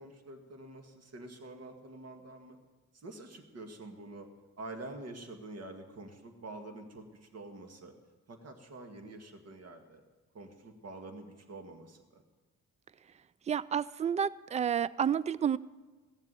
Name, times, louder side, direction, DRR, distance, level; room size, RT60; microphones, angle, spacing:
voice 1, 0.0-2.6 2.9-4.3 4.6-7.9 8.3-10.0 10.3-12.2, right 2 dB, 55° right, 4 dB, 2.0 m, -47 dB
voice 2, 13.5-15.6, right 8 dB, 25° right, 20 dB, 0.4 m, -30 dB
16.5 x 7.4 x 9.2 m, 1.3 s
cardioid pair, 90°, 30 cm